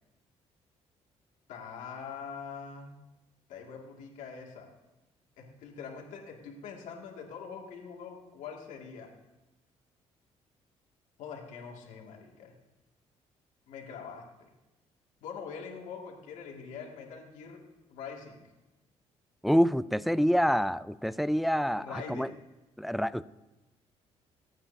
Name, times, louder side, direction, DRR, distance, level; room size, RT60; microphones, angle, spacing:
voice 1, 1.5-3.0 3.5-4.7 5.4-9.1 11.2-12.5 13.7-14.5 15.2-17.6 17.9-18.4 21.8-22.3, left 6 dB, 85° left, 0 dB, 2.2 m, -43 dB
voice 2, 19.4-22.3 22.8-23.2, equal, ahead, 16 dB, 0.4 m, -27 dB
27.0 x 9.1 x 2.8 m, 1.0 s
cardioid pair, 80°, 12 cm